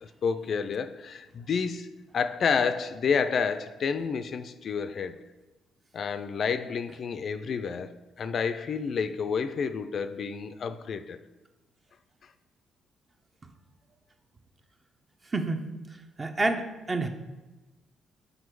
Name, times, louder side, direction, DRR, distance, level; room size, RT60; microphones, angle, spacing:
voice 1, 0.0-5.2 5.9-11.2, left 6 dB, 55° left, 0.4 m, -30 dB
voice 2, 15.3-15.7 16.2-17.1, right 2 dB, 30° right, 0.7 m, -28 dB
6.3 x 5.0 x 4.7 m
cardioid pair, 90°, 0 cm